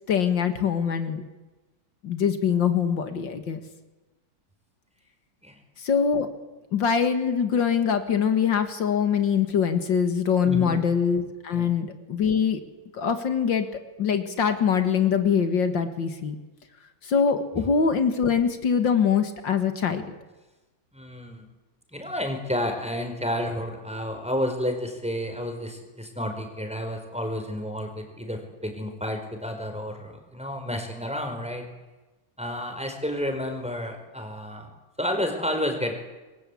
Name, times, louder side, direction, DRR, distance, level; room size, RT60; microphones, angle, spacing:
voice 1, 0.1-1.2 2.0-3.6 5.8-6.3 6.7-12.6 12.9-13.7 14.0-16.4 17.0-20.2, left 7 dB, 75° left, 8 dB, 2.5 m, -23 dB
voice 2, 10.4-10.8 11.5-11.7 17.5-17.7 20.9-21.5 21.9-31.7 32.4-34.7 35.0-35.9, equal, 5° right, 4 dB, 4.8 m, -31 dB
27.5 x 22.0 x 8.6 m, 1.2 s
omnidirectional pair, 2.0 m